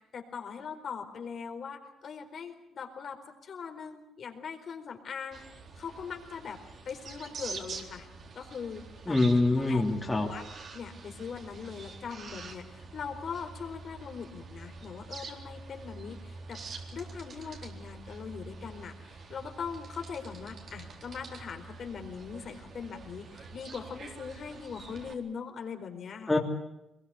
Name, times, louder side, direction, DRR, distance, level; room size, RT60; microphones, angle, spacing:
voice 1, 0.1-5.4 5.8-8.1 8.3-9.2 9.6-10.4 10.7-16.6 16.9-26.4, left 6 dB, 55° left, 5 dB, 4.4 m, -41 dB
sound 1, 5.3-25.1, right 4 dB, 55° right, 3.9 m, -46 dB
voice 2, 9.1-10.3 26.3-26.4, left 2 dB, 15° left, -1 dB, 3.0 m, -24 dB
23.5 x 21.5 x 8.2 m, 0.91 s
cardioid pair, 90°, 0 cm